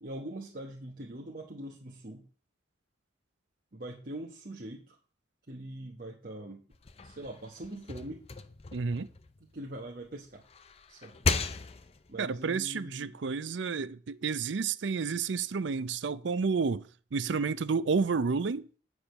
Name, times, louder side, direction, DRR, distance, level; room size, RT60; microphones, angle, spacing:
voice 1, 0.0-2.3 3.7-5.0 5.5-6.6 7.0-8.2 9.4-10.4 10.9-11.2 12.1-13.1, right 1 dB, 45° right, 1.1 m, -42 dB
sound 1, 6.7-9.9 10.3-12.1, left 4 dB, 30° left, 0.5 m, -36 dB
voice 2, 8.7-9.1 12.2-18.7, right 5 dB, 70° right, 0.5 m, -30 dB
8.7 x 4.9 x 6.3 m
head